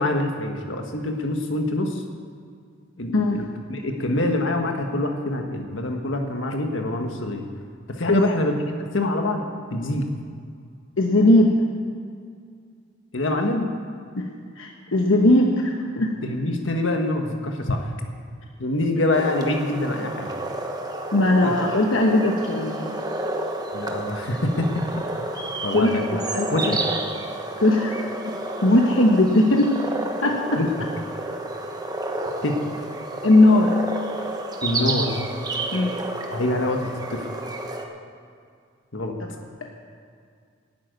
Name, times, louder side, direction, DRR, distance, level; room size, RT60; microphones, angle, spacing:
voice 1, 0.0-2.0 3.0-7.4 7.9-8.6 8.9-9.4 9.7-10.1 13.1-13.7 16.2-17.9 18.6-20.3 21.4-21.5 23.7-24.7 25.6-26.1 26.5-26.8 30.6-30.7 32.4-32.6 34.6-35.1 36.3-37.3 38.9-39.2, left 2 dB, 70° left, 3 dB, 1.6 m, -25 dB
voice 2, 11.0-11.5 14.2-14.3 14.6-16.1 21.1-23.0 25.7-26.8 27.6-28.0 28.6-29.7 30.2-30.6 33.2-33.8 35.7-36.0, left 1 dB, 85° left, 2 dB, 1.2 m, -19 dB
sound 1, 19.1-37.9, right 2 dB, 20° right, 1.2 m, -30 dB
12.0 x 8.6 x 9.4 m, 2.2 s
head